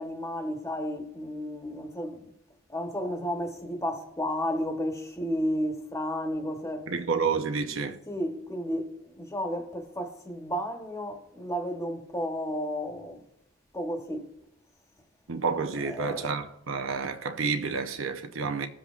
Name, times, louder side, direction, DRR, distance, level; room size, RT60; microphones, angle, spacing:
voice 1, 0.0-2.2 2.7-6.9 8.1-13.2 13.7-14.3 15.8-16.4, equal, 15° left, 1.0 m, -32 dB
voice 2, 6.9-8.0 15.3-18.7, right 5 dB, 85° right, 0.8 m, -29 dB
19.5 x 7.3 x 2.4 m
head